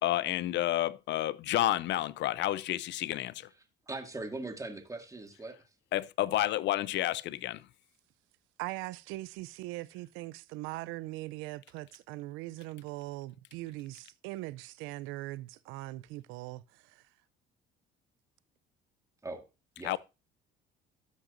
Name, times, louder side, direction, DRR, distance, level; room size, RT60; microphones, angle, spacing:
voice 1, 0.0-3.5 5.9-7.6 19.8-20.0, left 14 dB, 60° left, 0.5 m, -30 dB
voice 2, 3.9-5.6 19.2-19.4 19.8-20.0, right 2 dB, 15° right, 2.1 m, -40 dB
voice 3, 8.6-17.0, right 18 dB, 80° right, 0.5 m, -41 dB
13.0 x 6.0 x 2.5 m
supercardioid pair, 70°, 20 cm